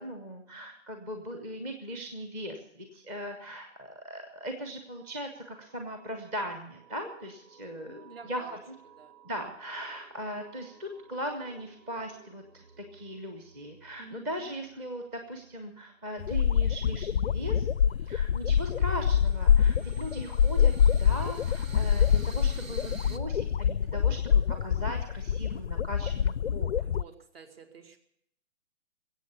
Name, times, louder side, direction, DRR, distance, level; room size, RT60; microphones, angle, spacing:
voice 1, 0.0-8.6 9.2-17.7 18.0-26.7, equal, 10° right, 5 dB, 0.8 m, -39 dB
sound 1, 3.7-18.1, right 6 dB, 70° right, 2.9 m, -59 dB
voice 2, 7.9-8.6 8.8-9.2 14.0-14.6 26.8-28.0, right 4 dB, 50° right, 9 dB, 2.0 m, -50 dB
sound 2, 16.2-27.0, left 8 dB, 60° left, 0.5 m, -25 dB
sound 3, 17.8-17.9 18.3-23.2, right 3 dB, 90° right, 1.3 m, -49 dB
22.0 x 8.2 x 6.9 m, 0.72 s
figure-of-eight pair, 140°, 39 cm